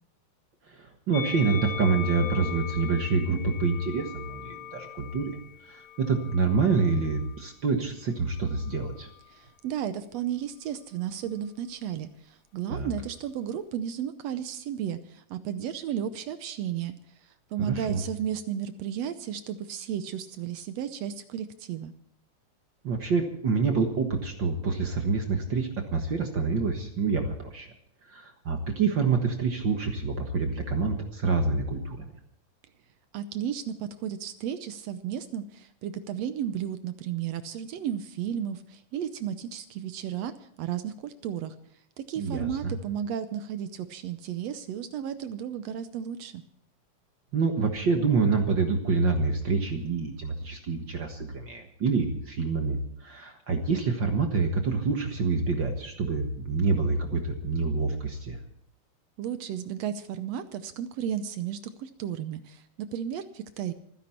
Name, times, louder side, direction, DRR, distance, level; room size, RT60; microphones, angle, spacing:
voice 1, 0.7-5.4 5.6-9.1 12.7-12.9 17.6-18.0 22.8-27.7 28.1-32.1 42.2-42.7 47.3-58.4, right 4 dB, 50° right, 4 dB, 1.5 m, -27 dB
Musical instrument, 1.1-7.5 8.4-9.4, left 9 dB, 70° left, 2.8 m, -40 dB
voice 2, 9.3-16.9 17.5-21.9 33.1-41.5 42.0-46.4 59.2-63.7, right 9 dB, 75° right, 11 dB, 1.6 m, -33 dB
26.5 x 10.5 x 4.4 m, 0.67 s
omnidirectional pair, 3.7 m